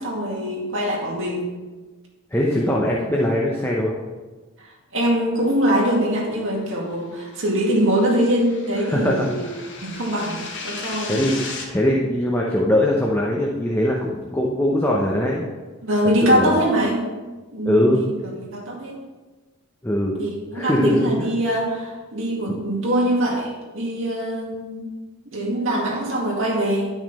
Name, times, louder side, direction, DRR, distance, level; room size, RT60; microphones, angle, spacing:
voice 1, 0.0-1.5 4.6-9.5 9.8-11.2 15.8-17.1 17.5-18.1 18.3-19.0 20.2-24.9 25.3-26.9, right 1 dB, 65° right, -3 dB, 2.3 m, -23 dB
voice 2, 2.3-3.9 8.8-9.3 11.0-15.4 16.2-16.6 17.6-18.0 19.8-20.2 20.5-21.1, left 1 dB, 10° left, -3 dB, 0.9 m, -21 dB
sound 1, 7.2-11.7, left 4 dB, 55° left, 1.5 m, -36 dB
11.0 x 6.1 x 4.2 m, 1.3 s
head